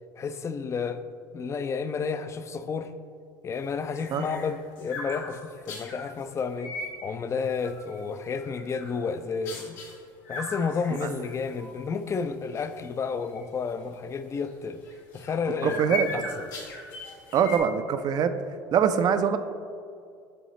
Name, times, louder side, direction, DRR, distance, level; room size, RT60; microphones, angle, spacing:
voice 1, 0.2-1.0 1.3-2.9 3.4-6.7 7.0-9.8 10.3-14.8 15.1-15.8 16.1-16.2, left 5 dB, 30° left, 0.4 m, -31 dB
sound 1, 3.6-6.0 6.5-7.0 7.4-8.0 8.4-9.0 9.5-9.9 10.2-11.7 12.1-12.2 12.6-12.8 13.3-13.4 14.9-17.6, left 2 dB, 85° left, 1.2 m, -38 dB
voice 2, 15.6-16.1 17.3-18.3 18.7-19.4, right 7 dB, 45° right, 0.4 m, -23 dB
7.9 x 3.9 x 3.1 m
supercardioid pair, 85°, 9 cm